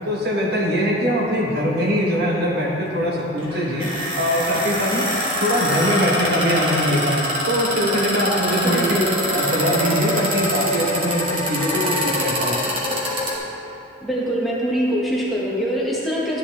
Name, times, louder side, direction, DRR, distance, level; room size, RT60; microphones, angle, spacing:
voice 1, 0.1-3.9 4.2-5.1 5.4-9.1 9.3-12.6, equal, 50° right, -3 dB, 1.3 m, -22 dB
sound 1, 3.4-13.3, equal, 25° right, 1.6 m, -24 dB
voice 2, 8.6-9.1 14.0-16.4, equal, ahead, -7 dB, 1.5 m, -23 dB
12.0 x 10.5 x 3.5 m, 2.8 s
head